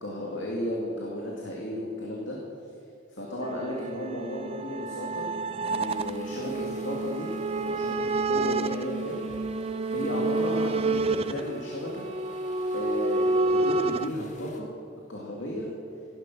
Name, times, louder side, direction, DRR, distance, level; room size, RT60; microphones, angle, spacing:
voice 1, 0.0-2.4 3.1-5.3 5.7-7.3 7.6-9.2 9.9-12.0 12.7-14.7 15.1-15.7, equal, 65° left, -2 dB, 2.3 m, -34 dB
sound 1, 3.4-14.1, right 2 dB, 30° right, 0.4 m, -29 dB
sound 2, 5.9-14.6, left 2 dB, 40° left, 1.5 m, -53 dB
17.5 x 11.0 x 6.1 m, 2.9 s
head